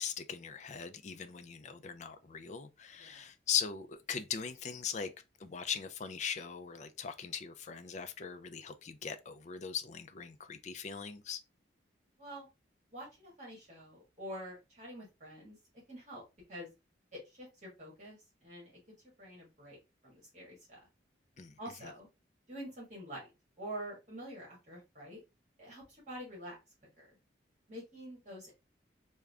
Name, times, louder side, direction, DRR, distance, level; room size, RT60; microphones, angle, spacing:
voice 1, 0.0-5.1 5.4-11.4 21.4-21.6, left 7 dB, 40° left, 0.4 m, -39 dB
voice 2, 3.0-3.3 12.2-12.5 12.9-15.6 15.9-16.2 16.5-16.7 17.1-18.8 19.2-19.8 20.0-20.8 21.6-22.1 22.5-23.2 23.6-25.2 25.6-26.6 27.0-27.1 27.7-28.5, right 1 dB, 40° right, 1.6 m, -47 dB
3.6 x 2.2 x 3.4 m
head